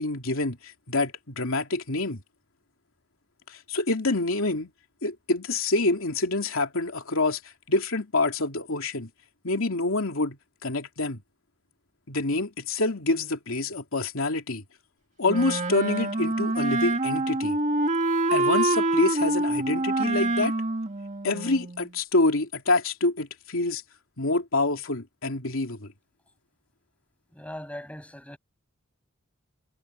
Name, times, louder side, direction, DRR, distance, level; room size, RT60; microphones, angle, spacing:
voice 1, 0.0-2.2 3.5-4.7 5.0-9.1 9.4-11.2 12.1-14.6 15.2-17.6 18.3-20.5 21.2-23.8 24.2-25.9, left 2 dB, 80° left, 2.8 m, -27 dB
Wind instrument woodwind instrument, 15.3-21.9, right 2 dB, 35° right, 2.0 m, -26 dB
voice 2, 27.3-28.4, left 1 dB, 5° left, 7.7 m, -39 dB
head